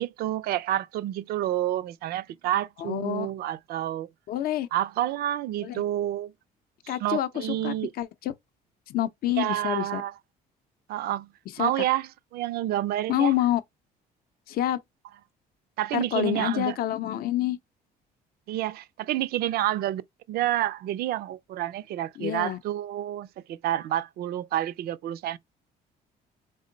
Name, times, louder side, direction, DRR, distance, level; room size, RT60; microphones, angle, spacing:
voice 1, 0.0-4.1 4.7-6.3 6.8-7.9 9.4-10.1 10.9-11.3 11.6-13.3 15.8-16.8 18.5-20.0 20.3-25.4, right 13 dB, 65° right, 0.4 m, -29 dB
voice 2, 2.8-3.3 4.3-4.7 5.6-5.8 6.9-8.3 8.9-10.0 11.6-11.8 13.1-13.6 14.5-14.8 15.9-17.6 22.2-22.6, left 13 dB, 60° left, 0.5 m, -27 dB
3.6 x 2.0 x 3.8 m
cardioid pair, 110°, 17 cm